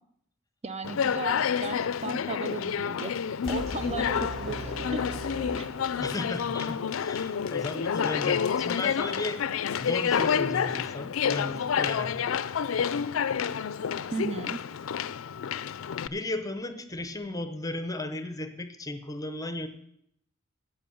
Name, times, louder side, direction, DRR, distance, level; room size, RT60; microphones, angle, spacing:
voice 1, 0.6-3.2 3.5-5.2 5.6-5.7 14.1-14.6, right 4 dB, 30° right, 10 dB, 0.6 m, -36 dB
Conversation, 0.8-16.1, left 7 dB, 80° left, 0.4 m, -29 dB
sound 1, 3.4-6.4, right 1 dB, ahead, 3.3 m, -39 dB
voice 2, 6.0-9.4 9.8-12.3 16.1-19.7, left 2 dB, 20° left, 10 dB, 0.9 m, -35 dB
16.0 x 5.6 x 7.0 m, 0.74 s
head